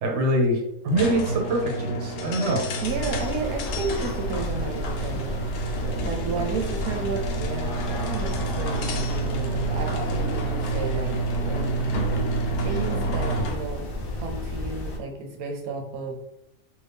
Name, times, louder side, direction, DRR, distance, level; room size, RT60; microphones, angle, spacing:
voice 1, 0.0-2.7, right 1 dB, 60° right, 1 dB, 1.0 m, -24 dB
sound 1, 0.9-13.7, right 2 dB, 80° left, 1.1 m, -29 dB
sound 2, 2.8-15.0, left 1 dB, 50° left, 0.7 m, -32 dB
voice 2, 2.8-12.0 12.5-13.9 14.2-16.2, right 4 dB, 90° right, 3 dB, 1.1 m, -33 dB
2.8 x 2.7 x 3.4 m, 0.82 s
omnidirectional pair, 1.5 m